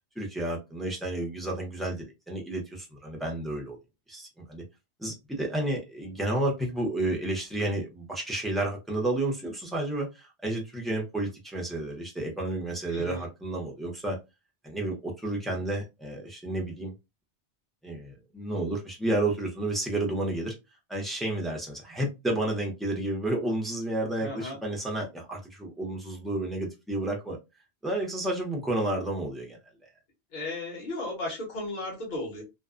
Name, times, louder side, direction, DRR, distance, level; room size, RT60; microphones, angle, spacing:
voice 1, 0.2-3.8 4.1-4.6 5.0-14.2 14.6-16.9 17.8-20.5 20.9-27.4 27.8-29.6, right 1 dB, ahead, 0.5 m, -31 dB
voice 2, 12.9-13.2 24.2-24.6 30.3-32.4, left 2 dB, 45° left, 1.1 m, -35 dB
2.5 x 2.2 x 2.4 m
omnidirectional pair, 1.1 m